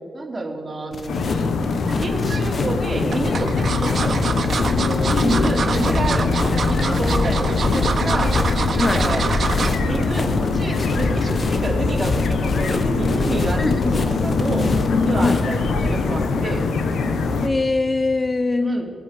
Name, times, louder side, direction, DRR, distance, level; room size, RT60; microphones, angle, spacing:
voice 1, 0.1-1.3 2.0-4.2 4.6-8.3 8.7-9.3 9.8-14.7 15.0-16.6 18.6-18.9, right 2 dB, 25° right, -1 dB, 3.2 m, -28 dB
sound 1, 0.9-16.3, left 2 dB, 50° left, 1.2 m, -26 dB
sound 2, 1.1-17.5, left 4 dB, 85° left, 1.1 m, -23 dB
sound 3, 1.9-2.4 3.1-9.8 10.2-10.4 10.7-10.8, right 5 dB, 60° right, 1.4 m, -26 dB
voice 2, 13.6-14.0 15.2-15.4 17.4-18.8, left 3 dB, 30° left, 12 dB, 0.5 m, -22 dB
23.5 x 8.2 x 5.2 m, 2.6 s
cardioid pair, 75°, 0 cm